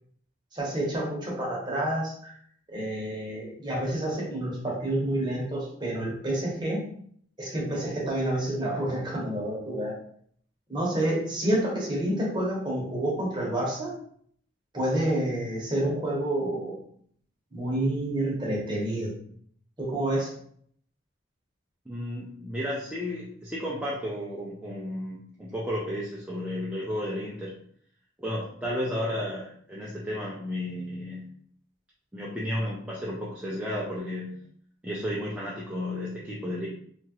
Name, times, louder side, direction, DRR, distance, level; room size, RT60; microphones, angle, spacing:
voice 1, 0.5-2.3 2.7-6.8 7.4-10.0 10.7-13.9 14.7-16.7 17.5-19.1 19.8-20.3, right 1 dB, 20° right, -4 dB, 0.9 m, -29 dB
voice 2, 21.9-27.5 28.2-31.3 32.1-34.3 34.8-36.7, left 1 dB, 5° right, -6 dB, 0.4 m, -33 dB
2.9 x 2.3 x 2.9 m, 0.62 s
head